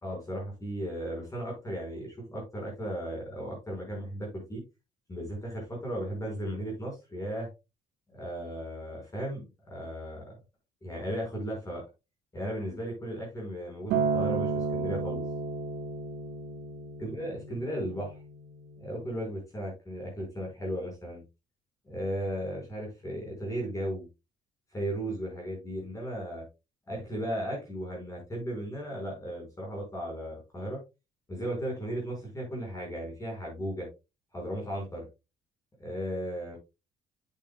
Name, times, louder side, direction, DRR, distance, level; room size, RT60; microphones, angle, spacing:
voice 1, 0.0-4.6 5.1-7.5 8.1-10.3 10.8-11.8 12.3-15.2 17.0-18.2 18.8-21.2 21.9-24.1 24.7-26.4 26.9-30.8 31.3-33.9 34.3-35.1 35.8-36.6, equal, 20° left, -2 dB, 5.0 m, -36 dB
Acoustic guitar, 13.9-18.2 19.0-19.1, right 4 dB, 80° right, 1.4 m, -32 dB
8.4 x 8.3 x 2.2 m, 0.26 s
cardioid pair, 110°, 17 cm